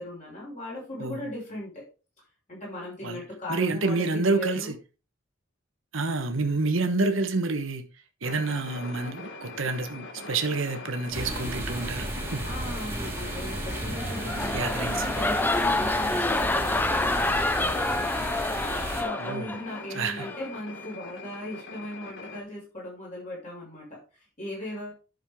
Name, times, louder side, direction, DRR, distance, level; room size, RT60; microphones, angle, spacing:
voice 1, 0.0-1.8 2.5-4.7 12.4-18.1 18.9-24.9, left 1 dB, 35° left, 5.4 m, -38 dB
voice 2, 3.5-4.7 5.9-7.8 8.2-12.5 14.5-15.2 19.2-19.5 19.9-20.3, right 3 dB, 70° right, 1.2 m, -28 dB
sound 1, 8.2-22.4, left 3 dB, 55° left, 1.6 m, -42 dB
sound 2, 11.1-19.0, right 1 dB, 10° right, 2.0 m, -34 dB
sound 3, 13.9-19.8 20.2-20.5, left 2 dB, 10° left, 0.4 m, -27 dB
10.5 x 6.7 x 3.7 m
head